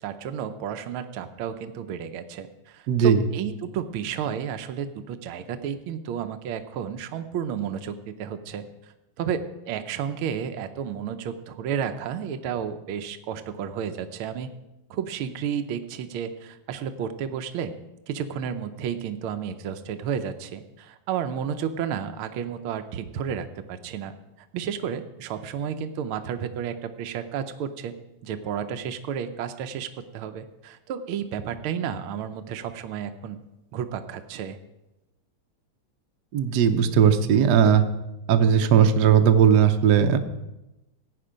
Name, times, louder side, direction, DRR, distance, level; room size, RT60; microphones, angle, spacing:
voice 1, 0.0-14.5 14.9-17.7 18.1-24.1 24.5-27.9 28.2-33.4 33.7-34.6, right 8 dB, 75° right, 8 dB, 1.6 m, -32 dB
voice 2, 2.9-3.2 36.3-37.8 38.3-40.2, right 8 dB, 60° right, 7 dB, 1.2 m, -18 dB
16.5 x 9.4 x 5.1 m, 0.95 s
omnidirectional pair, 2.4 m